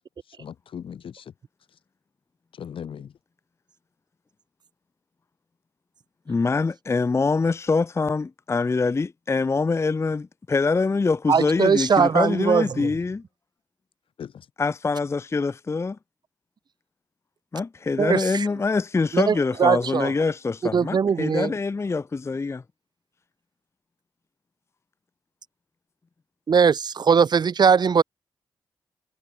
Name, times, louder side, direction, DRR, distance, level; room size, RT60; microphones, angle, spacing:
voice 1, 0.3-1.3 1.7-1.8 2.5-3.1 14.2-14.5, left 8 dB, 80° left, 2.6 m, -38 dB
voice 2, 6.3-13.2 14.6-16.0 17.5-22.6, left 4 dB, 30° left, 0.5 m, -24 dB
voice 3, 11.3-12.9 18.0-18.5 19.1-20.1 20.7-21.5 26.5-28.0, right 6 dB, 55° right, 0.5 m, -20 dB
cardioid pair, 60°, 9 cm